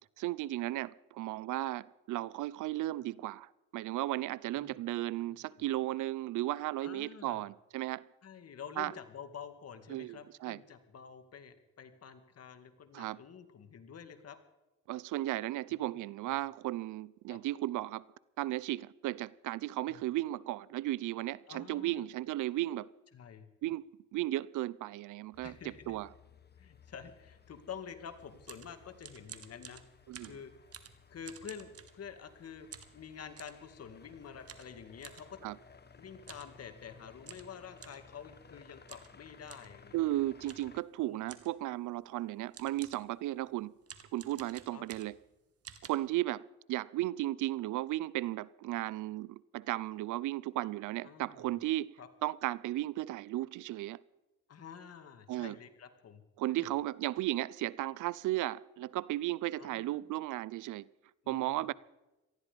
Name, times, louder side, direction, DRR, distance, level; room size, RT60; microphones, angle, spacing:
voice 1, 0.2-8.1 8.8-8.9 9.9-10.6 12.9-13.2 14.9-18.0 18.4-22.9 23.6-26.1 30.1-30.4 35.4-35.6 39.9-43.7 44.1-45.2 45.8-51.9 52.2-54.0 55.3-55.6 56.4-60.9 61.3-61.7, right 16 dB, 85° right, 0.6 m, -35 dB
voice 2, 5.2-5.6 6.8-7.4 8.2-14.4 15.7-15.8 16.3-16.4 17.3-17.4 19.8-20.0 21.5-22.0 23.1-23.5 25.4-26.0 26.6-29.8 30.2-30.5 31.1-35.4 36.0-40.0 41.0-41.3 44.7-44.8 51.0-51.5 52.0-52.1 54.5-56.2 56.6-56.7 59.6-60.1 61.2-61.7, left 7 dB, 55° left, 2.2 m, -49 dB
sound 1, 25.3-40.8, left 5 dB, 35° left, 1.4 m, -59 dB
sound 2, 28.2-32.4 32.7-33.6 34.5-35.3 36.2-36.5 36.8-36.9 37.2-38.1 38.9-39.2 39.5-39.7 40.5-40.8 41.3-41.6 42.2-42.3 42.5-43.1 43.8-45.3 45.6-45.9, right 8 dB, 50° right, 1.8 m, -51 dB
19.0 x 14.0 x 5.2 m
cardioid pair, 90°, 30 cm